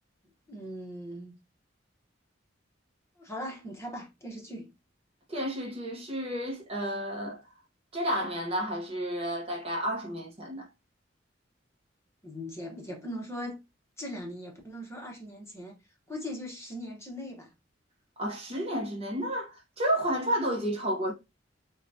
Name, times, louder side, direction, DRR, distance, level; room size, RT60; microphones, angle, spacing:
voice 1, 0.5-1.4 3.2-4.7 12.2-13.6 14.0-15.7 16.1-17.5, equal, 15° left, 0.8 m, -39 dB
voice 2, 5.3-7.4 7.9-10.7 18.2-21.1, equal, 30° right, 0.7 m, -31 dB
4.5 x 2.2 x 2.6 m
head